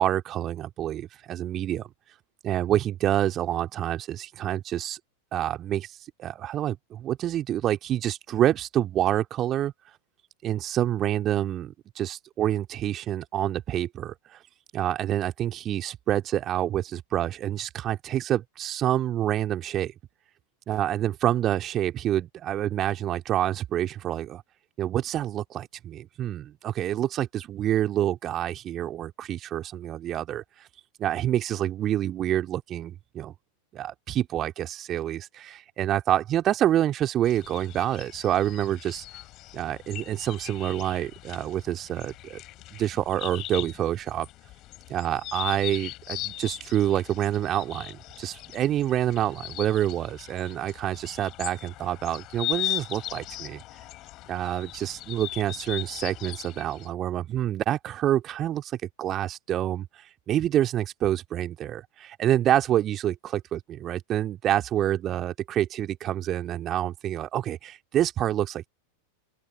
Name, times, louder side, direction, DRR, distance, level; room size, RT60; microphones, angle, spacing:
voice 1, 0.0-1.9 2.4-5.0 5.3-5.9 6.2-9.7 10.4-14.4 14.7-19.9 20.7-24.4 24.8-30.4 31.0-33.3 33.7-39.0 39.5-42.4 42.7-44.3 44.9-53.6 54.3-59.9 60.3-68.7, right 12 dB, 30° right, 2.5 m, -27 dB
sound 1, 37.2-56.9, left 17 dB, 35° left, 5.6 m, -39 dB
open air
figure-of-eight pair, 90°, 0 cm